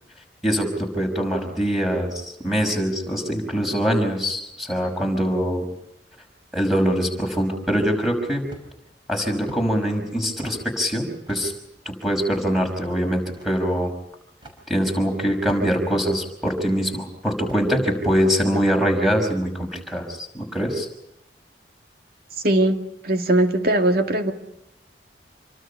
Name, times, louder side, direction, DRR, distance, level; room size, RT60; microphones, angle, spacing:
voice 1, 0.4-5.6 6.5-8.4 9.1-11.5 11.9-13.9 14.7-20.9, equal, ahead, 3 dB, 5.8 m, -23 dB
sound 1, 8.5-8.9 9.5-9.6 10.4-10.6 11.3-11.5 12.3-12.5 13.4-13.5 14.4-14.6 15.5-15.9 16.5-16.6 17.5-17.7, equal, 25° right, 5.8 m, -40 dB
voice 2, 22.4-22.8 23.0-24.3, right 1 dB, 55° right, 5 dB, 2.3 m, -19 dB
27.5 x 25.0 x 5.7 m, 0.81 s
head